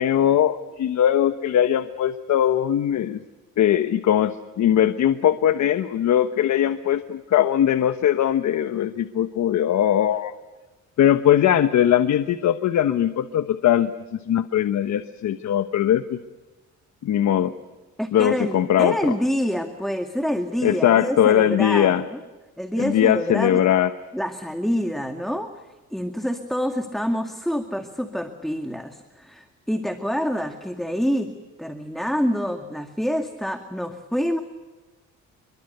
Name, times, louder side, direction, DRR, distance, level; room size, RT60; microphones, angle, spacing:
voice 1, 0.0-3.2 3.6-10.3 11.0-13.9 14.3-16.2 17.0-17.5 18.1-19.0 20.6-22.0 22.8-23.9, left 10 dB, 70° left, 10 dB, 1.2 m, -20 dB
voice 2, 18.0-22.2 22.6-23.6 24.1-25.5 25.9-31.3 31.6-34.4, equal, ahead, 5 dB, 2.2 m, -26 dB
28.0 x 23.5 x 6.8 m, 1.2 s
cardioid pair, 90°, 30 cm